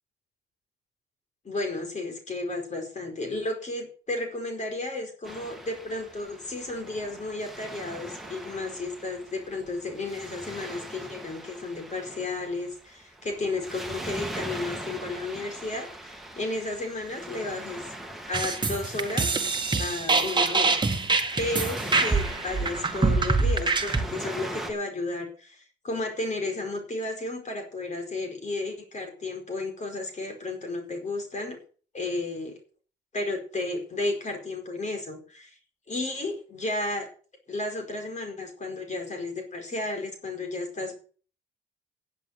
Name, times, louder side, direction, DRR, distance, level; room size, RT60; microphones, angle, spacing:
voice 1, 1.4-17.9 18.3-19.4 19.8-20.8 21.4-31.6 31.9-32.6 33.1-35.6 35.9-37.1 37.5-40.9, left 2 dB, 35° left, 4 dB, 4.7 m, -33 dB
Waves surf, 5.2-24.7, right 1 dB, ahead, 2.6 m, -41 dB
sound 1, 18.3-24.0, right 3 dB, 25° right, 1.9 m, -25 dB
10.5 x 8.3 x 8.0 m, 0.40 s
cardioid pair, 90°, 20 cm